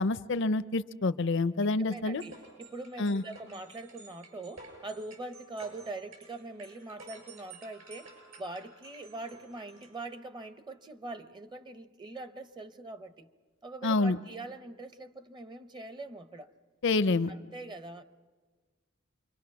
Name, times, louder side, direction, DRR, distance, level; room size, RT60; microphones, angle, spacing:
voice 1, 0.0-2.2 3.0-3.2 13.8-14.2 16.8-17.3, left 3 dB, 60° left, 14 dB, 0.6 m, -27 dB
voice 2, 1.6-2.3 2.6-13.3 13.6-16.5 17.3-18.0, right 2 dB, 20° right, 11 dB, 0.7 m, -43 dB
sound 1, 2.2-10.0, right 3 dB, 80° right, 7.3 m, -52 dB
27.0 x 23.5 x 5.9 m, 1.4 s
head